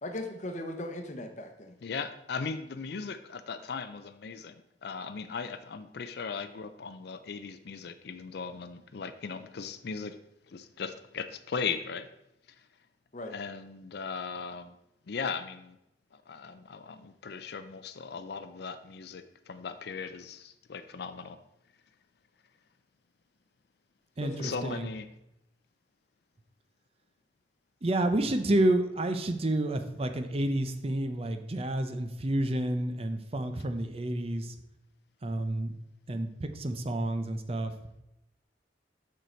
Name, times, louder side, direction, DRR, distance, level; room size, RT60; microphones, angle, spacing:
voice 1, 0.0-1.7 13.1-13.3 24.2-24.8, left 1 dB, 40° left, 6 dB, 0.8 m, -38 dB
voice 2, 1.8-10.2 10.5-12.1 13.3-14.8 15.1-15.8 16.1-21.4 24.4-25.0, left 5 dB, 60° left, 11 dB, 0.4 m, -38 dB
voice 3, 24.2-24.9 27.8-34.6 35.2-35.7 36.1-37.7, right 1 dB, 30° right, 8 dB, 0.6 m, -29 dB
6.7 x 6.4 x 4.4 m, 0.86 s
head